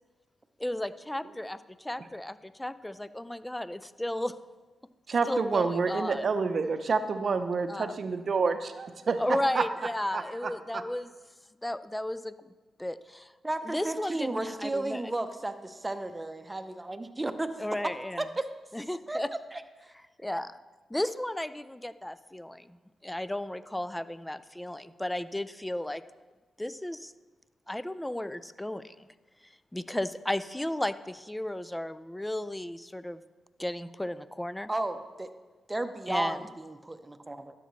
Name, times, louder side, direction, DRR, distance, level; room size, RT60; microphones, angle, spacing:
voice 1, 0.6-1.6 1.8-4.3 5.3-6.2 7.7-7.9 9.2-11.1 11.6-12.3 12.8-13.2 13.7-15.0 17.6-18.2 18.7-19.3 20.2-20.5 20.9-22.6 23.0-26.0 26.6-27.1 27.7-28.8 29.7-33.2 33.6-34.7 36.1-36.4, left 1 dB, 10° left, 15 dB, 0.4 m, -34 dB
voice 2, 5.1-9.7 10.1-10.8, right 4 dB, 55° right, 9 dB, 0.6 m, -29 dB
voice 3, 13.4-18.5 19.1-19.6 34.7-35.3 35.7-37.6, right 2 dB, 20° right, 9 dB, 0.8 m, -34 dB
12.0 x 6.9 x 3.2 m, 1.2 s
supercardioid pair, 45°, 0 cm